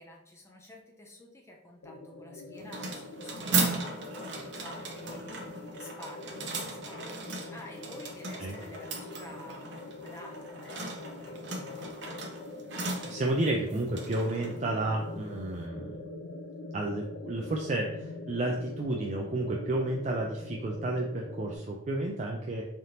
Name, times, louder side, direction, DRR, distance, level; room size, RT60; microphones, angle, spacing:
voice 1, 0.0-12.2, left 1 dB, 15° left, 0 dB, 0.6 m, -51 dB
sound 1, 1.8-21.6, left 2 dB, 85° left, 0.5 m, -44 dB
sound 2, 2.5-15.6, right 3 dB, 65° right, 0.7 m, -37 dB
voice 2, 12.7-16.0 16.7-22.6, right 2 dB, 35° right, -1 dB, 0.4 m, -31 dB
3.8 x 3.4 x 2.8 m, 0.85 s
head